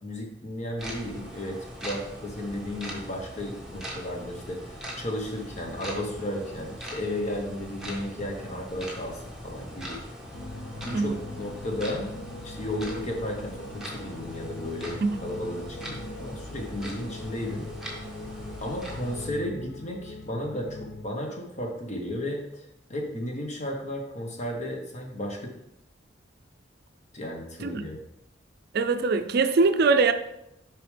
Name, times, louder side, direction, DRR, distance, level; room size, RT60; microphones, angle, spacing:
voice 1, 0.0-10.0 10.8-12.1 12.4-17.7 18.6-25.6 27.1-28.0, left 1 dB, 40° left, 1.2 m, -34 dB
sound 1, 0.8-19.3, equal, 5° right, 1.2 m, -41 dB
sound 2, 10.3-21.0, left 2 dB, 65° left, 0.4 m, -41 dB
voice 2, 28.7-30.1, right 4 dB, 60° right, 0.4 m, -22 dB
6.8 x 4.9 x 3.3 m
head